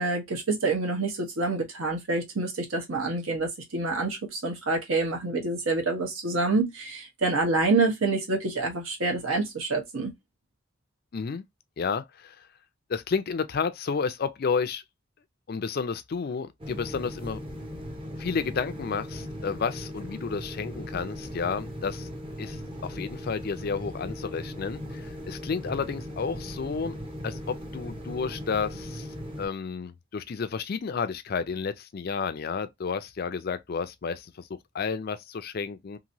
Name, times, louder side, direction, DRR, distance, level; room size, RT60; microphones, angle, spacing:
voice 1, 0.0-10.1, right 3 dB, 75° right, 1.1 m, -27 dB
voice 2, 11.1-11.4 11.8-12.4 12.9-14.8 15.5-17.4 18.2-22.1 22.4-27.0 27.2-29.1 29.4-34.5 34.7-36.0, left 5 dB, 45° left, 0.4 m, -31 dB
sound 1, 16.6-29.5, equal, 25° right, 0.7 m, -38 dB
2.9 x 2.6 x 2.6 m
head